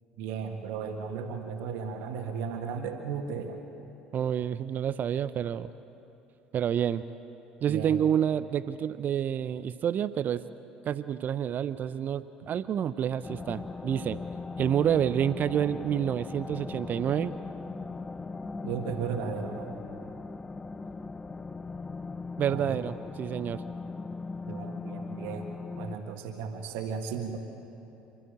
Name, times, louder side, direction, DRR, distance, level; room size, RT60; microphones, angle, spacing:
voice 1, 0.2-3.6 7.7-8.0 18.6-19.7 22.5-22.8 24.5-27.4, right 6 dB, 65° right, 3 dB, 1.7 m, -35 dB
voice 2, 4.1-5.7 6.5-7.0 7.6-10.4 10.8-14.2 14.6-17.3 22.4-23.6, right 9 dB, 45° right, 14 dB, 0.6 m, -28 dB
sound 1, 13.2-26.0, left 4 dB, 20° left, 0.5 m, -39 dB
28.0 x 12.5 x 8.9 m, 2.9 s
figure-of-eight pair, 60°, 4 cm